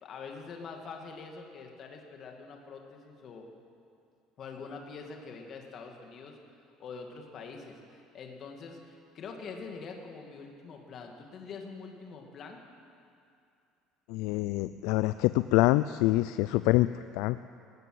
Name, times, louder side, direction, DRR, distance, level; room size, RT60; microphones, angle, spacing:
voice 1, 0.0-3.5 4.4-6.4 6.8-12.6, left 4 dB, 35° left, 2 dB, 2.4 m, -44 dB
voice 2, 14.1-17.4, left 17 dB, 70° left, 13 dB, 0.4 m, -26 dB
19.5 x 17.5 x 7.9 m, 2.5 s
cardioid pair, 170°, 0 cm